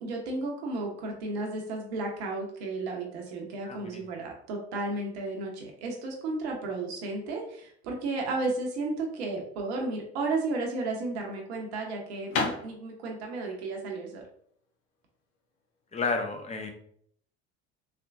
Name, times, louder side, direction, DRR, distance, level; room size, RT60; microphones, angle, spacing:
voice 1, 0.0-14.2, right 3 dB, 70° right, 1 dB, 0.9 m, -33 dB
voice 2, 3.6-4.0 15.9-16.7, left 4 dB, 20° left, 4 dB, 0.7 m, -31 dB
sound 1, 11.1-16.1, left 4 dB, 55° left, 0.8 m, -36 dB
3.4 x 2.9 x 2.4 m, 0.64 s
hypercardioid pair, 70°, 33 cm